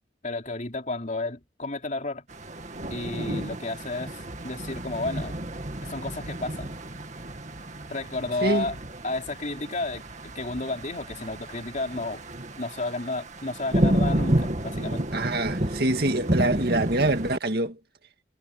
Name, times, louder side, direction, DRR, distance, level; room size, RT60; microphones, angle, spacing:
voice 1, 0.2-2.2 2.9-5.3 5.9-6.7 7.9-8.7 9.0-12.2 12.6-15.0, left 2 dB, 45° left, 3.6 m, -32 dB
sound 1, 2.3-17.4, right 1 dB, 40° right, 2.1 m, -31 dB
voice 2, 15.1-17.8, right 2 dB, 60° right, 2.0 m, -25 dB
head